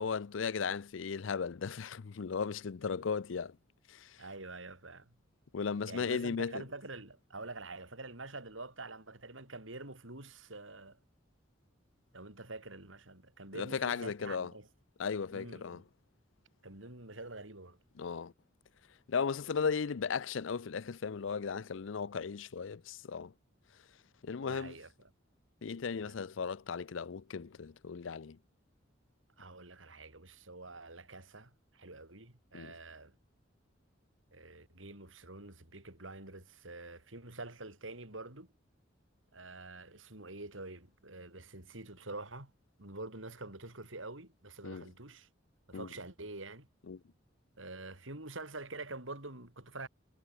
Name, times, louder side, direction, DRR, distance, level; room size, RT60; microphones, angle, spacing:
voice 1, 0.0-3.5 3.9-4.2 5.5-6.5 13.5-14.5 15.0-15.8 18.0-18.3 19.1-23.3 24.2-24.7 25.6-28.4 32.5-32.7 44.6-44.8 45.7-45.9 46.9-47.0, left 5 dB, 75° left, 0.5 m, -36 dB
voice 2, 4.2-5.2 5.9-11.0 12.1-14.7 15.3-15.8 16.6-17.8 24.4-25.1 26.0-26.2 29.4-33.2 34.3-38.5 39.3-42.5 42.8-45.3 45.7-46.7 47.6-49.9, right 2 dB, 80° right, 6.1 m, -46 dB
head